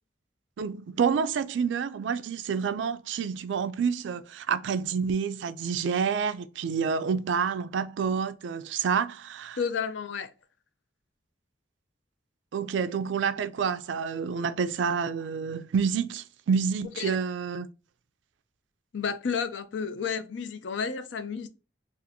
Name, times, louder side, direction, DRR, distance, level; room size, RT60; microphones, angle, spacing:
voice 1, 0.6-9.6 12.5-17.7, right 6 dB, 80° right, 0.4 m, -28 dB
voice 2, 9.6-10.3 17.0-17.2 18.9-21.5, left 6 dB, 75° left, 0.5 m, -31 dB
4.1 x 2.5 x 2.6 m
head